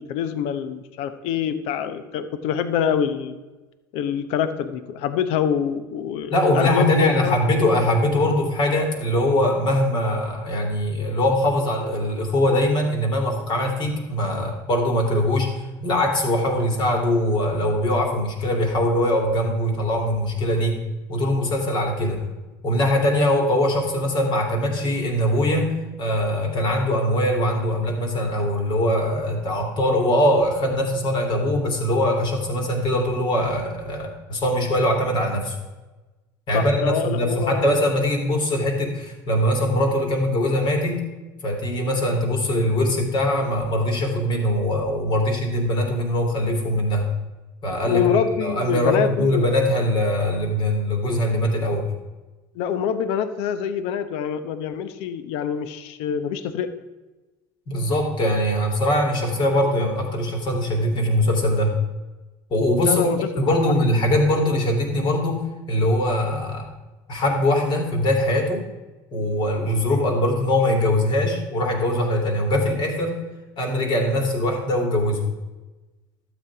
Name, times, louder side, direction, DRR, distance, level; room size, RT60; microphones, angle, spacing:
voice 1, 0.0-3.3 3.9-7.4 36.5-37.7 47.9-49.5 52.5-56.7 62.8-63.2, left 8 dB, 65° left, 11 dB, 0.9 m, -25 dB
voice 2, 6.3-20.8 21.1-22.2 22.6-25.7 26.0-35.5 36.5-41.0 41.4-47.1 47.6-51.9 57.7-61.8 62.5-63.1 63.4-66.7 67.1-68.6 69.1-73.2 73.6-75.3, left 1 dB, 50° left, 2 dB, 3.0 m, -22 dB
12.0 x 8.1 x 4.8 m, 1.2 s
hypercardioid pair, 85°, 11 cm